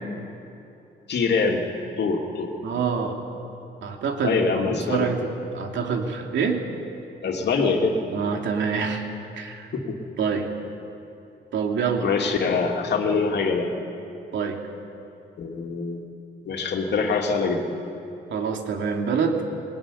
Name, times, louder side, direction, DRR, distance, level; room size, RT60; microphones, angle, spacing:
voice 1, 1.1-1.7 2.0-2.5 4.2-5.1 7.2-8.0 9.7-10.0 12.0-13.7 15.4-16.0 16.4-17.6, left 4 dB, 60° left, 2 dB, 2.9 m, -24 dB
voice 2, 2.6-3.2 3.8-6.6 8.1-9.0 9.4-9.7 10.2-10.5 11.5-12.0 14.3-14.6 18.3-19.4, right 5 dB, 70° right, 2 dB, 2.9 m, -26 dB
20.0 x 20.0 x 9.9 m, 2.8 s
cardioid pair, 90°, 20 cm